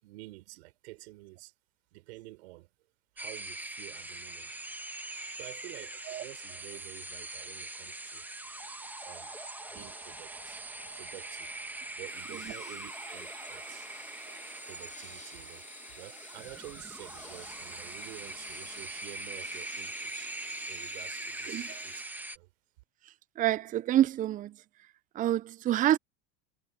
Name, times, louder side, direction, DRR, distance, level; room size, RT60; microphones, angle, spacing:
voice 1, 0.0-1.5 1.9-2.7 3.1-4.7 5.3-8.2 9.0-9.3 9.7-11.6 12.0-13.9 14.6-15.6 16.0-20.3 20.7-22.0 22.3-22.5, right 20 dB, 80° right, 5.7 m, -49 dB
sound 1, 3.2-22.4, right 2 dB, 5° right, 1.4 m, -42 dB
sound 2, 12.1-22.0, left 6 dB, 25° left, 4.8 m, -54 dB
voice 2, 21.4-21.8 23.4-24.6 25.1-26.0, right 12 dB, 25° right, 0.5 m, -27 dB
supercardioid pair, 120°, 31 cm